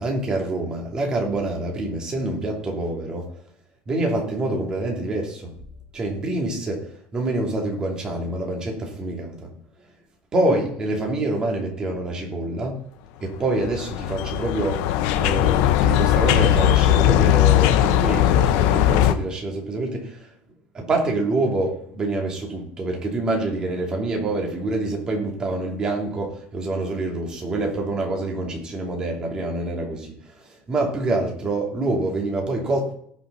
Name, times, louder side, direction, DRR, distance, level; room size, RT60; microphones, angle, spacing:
voice 1, 0.0-3.3 3.9-5.6 5.9-6.8 7.1-9.5 10.3-12.8 13.2-14.8 15.1-20.3 20.7-32.9, right 2 dB, 20° right, 0 dB, 3.0 m, -26 dB
sound 1, 13.3-19.1, left 12 dB, 85° left, 1.0 m, -19 dB
18.0 x 6.2 x 4.2 m, 0.65 s
cardioid pair, 160°, 4 cm